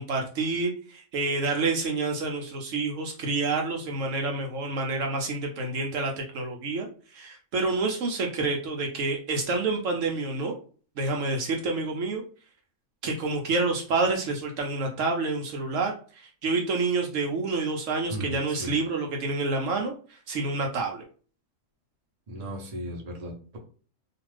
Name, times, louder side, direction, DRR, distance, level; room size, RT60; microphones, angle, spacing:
voice 1, 0.0-6.9 7.1-10.5 11.0-12.2 13.0-21.0, right 3 dB, 70° right, 2 dB, 0.9 m, -28 dB
voice 2, 18.1-18.8 22.3-23.6, equal, 35° right, 0 dB, 0.7 m, -36 dB
2.5 x 2.4 x 3.2 m, 0.39 s
omnidirectional pair, 1.5 m